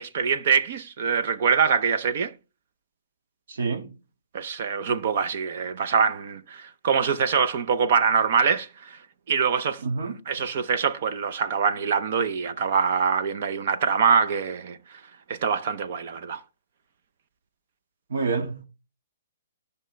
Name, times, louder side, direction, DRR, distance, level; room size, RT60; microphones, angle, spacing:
voice 1, 0.0-2.3 4.3-9.0 9.3-9.8 10.3-14.8 15.3-16.4, right 6 dB, 40° right, 0.6 m, -24 dB
voice 2, 3.5-3.9 9.8-10.1 18.1-18.7, right 4 dB, 65° right, 1.6 m, -27 dB
15.0 x 5.6 x 3.3 m
hypercardioid pair, 175°, 0 cm